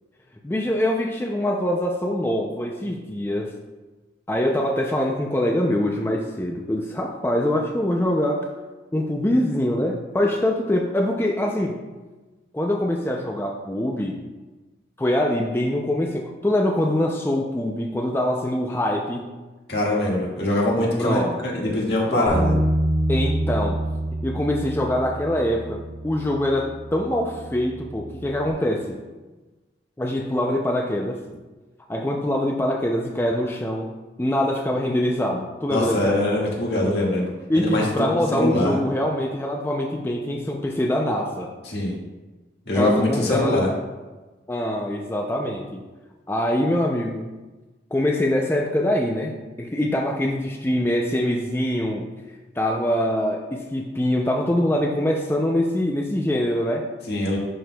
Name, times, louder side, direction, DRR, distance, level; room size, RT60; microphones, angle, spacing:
voice 1, 0.4-3.5 4.3-8.5 8.9-11.8 12.5-14.2 15.0-19.3 21.0-21.4 22.1-22.4 23.1-23.8 24.2-29.0 30.0-31.2 31.9-33.9 34.2-36.4 37.5-41.5 42.7-43.7 44.5-45.8 46.3-47.3 47.9-52.1 52.6-56.9, left 1 dB, 15° left, 0 dB, 0.4 m, -24 dB
voice 2, 19.7-22.5 35.7-38.8 41.7-41.9 42.6-43.7 57.1-57.4, left 1 dB, 70° left, -4 dB, 1.7 m, -23 dB
Bass guitar, 22.3-28.5, right 1 dB, 85° right, 1.2 m, -27 dB
11.0 x 4.5 x 2.3 m, 1.2 s
head